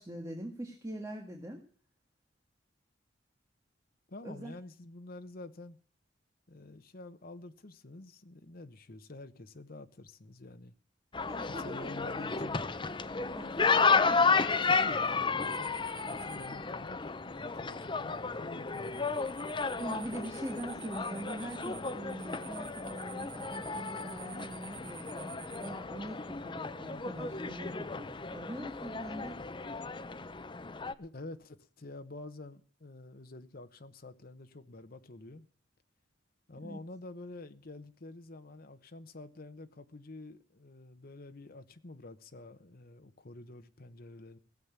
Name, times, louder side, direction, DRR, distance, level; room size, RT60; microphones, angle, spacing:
voice 1, 0.0-1.6 4.2-4.5 11.3-11.9 12.2-12.5 13.3-14.6 19.8-29.4 36.6-36.8, right 1 dB, 15° right, 1.7 m, -43 dB
voice 2, 4.1-5.8 6.5-10.7 11.4-12.7 14.4-19.3 31.0-35.5 36.5-44.4, left 2 dB, 50° left, 1.0 m, -48 dB
sound 1, 11.1-30.9, left 4 dB, 25° left, 0.6 m, -33 dB
sound 2, 15.4-16.5 18.7-25.7, right 9 dB, 50° right, 1.9 m, -50 dB
17.0 x 7.3 x 8.2 m
head